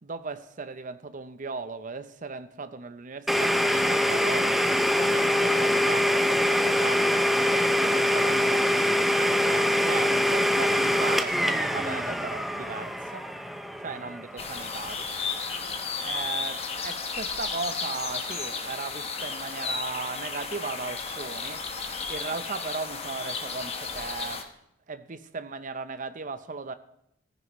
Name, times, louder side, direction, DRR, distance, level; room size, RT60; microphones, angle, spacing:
voice 1, 0.0-4.6 5.0-13.3 13.8-15.1 16.0-21.6 22.1-24.4 24.9-26.7, right 4 dB, 40° right, 10 dB, 0.7 m, -37 dB
Domestic sounds home sounds, 3.3-14.9, equal, ahead, 0.5 m, -24 dB
sound 1, 14.4-24.4, left 4 dB, 30° left, 1.1 m, -33 dB
14.5 x 14.5 x 3.1 m, 0.77 s
head